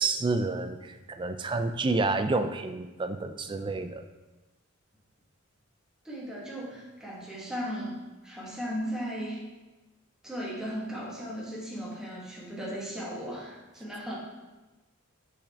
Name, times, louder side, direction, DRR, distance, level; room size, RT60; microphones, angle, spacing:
voice 1, 0.0-4.0, right 3 dB, 25° right, 7 dB, 0.4 m, -29 dB
voice 2, 6.0-8.0 8.2-9.4 10.2-14.1, equal, 5° right, -6 dB, 1.6 m, -36 dB
7.7 x 5.1 x 3.5 m, 1.1 s
head